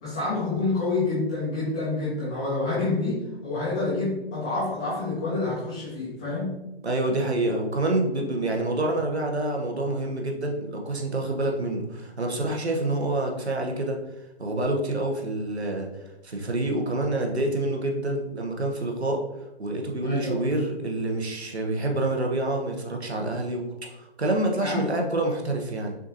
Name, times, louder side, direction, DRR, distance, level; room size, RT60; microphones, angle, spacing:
voice 1, 0.0-6.6 20.0-20.4 24.6-24.9, left 3 dB, 5° left, -11 dB, 0.3 m, -28 dB
voice 2, 6.8-14.0 14.4-15.9 16.2-19.2 19.6-25.9, right 2 dB, 85° right, 2 dB, 1.0 m, -27 dB
6.1 x 2.7 x 2.8 m, 0.94 s
figure-of-eight pair, 135°, 32 cm